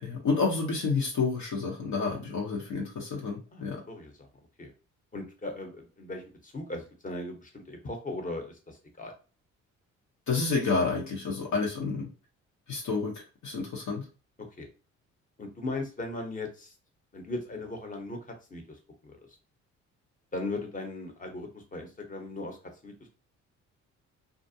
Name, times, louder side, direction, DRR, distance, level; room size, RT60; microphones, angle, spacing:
voice 1, 0.0-3.8 10.3-12.1 12.7-14.0, left 4 dB, 70° left, -2 dB, 0.9 m, -29 dB
voice 2, 3.5-4.3 4.6-4.7 5.1-9.1 14.6-14.7 15.4-16.7 17.1-19.2 20.3-22.6 22.8-23.1, left 2 dB, 25° left, 3 dB, 0.9 m, -38 dB
2.4 x 2.1 x 2.7 m, 0.34 s
cardioid pair, 90°, 30 cm